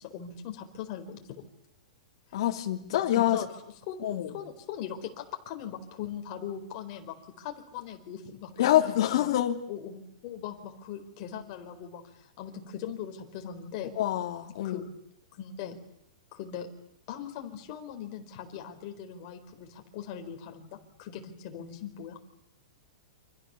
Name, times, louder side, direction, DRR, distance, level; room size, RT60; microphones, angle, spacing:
voice 1, 0.0-1.4 2.9-3.5 3.9-8.5 9.2-9.3 9.7-13.9 14.6-14.9 15.3-15.8 16.3-16.7 17.1-22.2, left 9 dB, 30° left, 4.4 m, -40 dB
voice 2, 2.3-3.4 4.0-4.4 8.6-9.6 14.0-14.8, left 12 dB, 45° left, 3.1 m, -26 dB
29.0 x 26.5 x 7.1 m
supercardioid pair, 175°, 3 cm